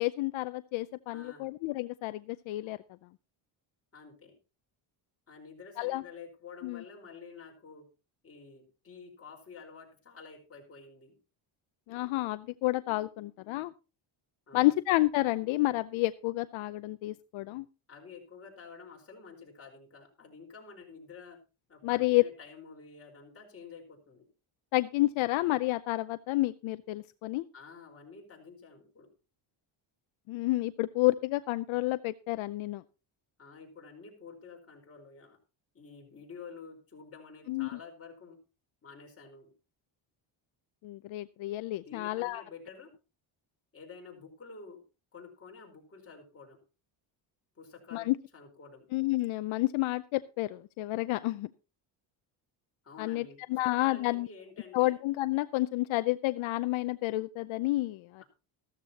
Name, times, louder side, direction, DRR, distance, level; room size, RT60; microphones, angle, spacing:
voice 1, 0.0-2.8 5.8-6.0 6.6-6.8 11.9-13.7 14.5-17.7 21.8-22.2 24.7-27.4 30.3-32.8 37.5-37.7 40.8-42.4 47.9-48.1 48.9-51.5 53.0-54.3 54.7-58.2, left 19 dB, 75° left, 13 dB, 0.6 m, -30 dB
voice 2, 1.1-1.5 3.9-4.3 5.3-7.9 8.2-11.2 14.5-14.8 17.9-21.4 21.7-24.3 27.5-29.1 33.4-35.4 35.7-38.4 38.8-39.5 41.8-42.9 43.7-44.8 45.1-46.6 47.5-48.9 52.8-54.9, left 5 dB, 30° left, 0 dB, 4.5 m, -50 dB
14.0 x 13.5 x 2.9 m, 0.31 s
cardioid pair, 135°, 48 cm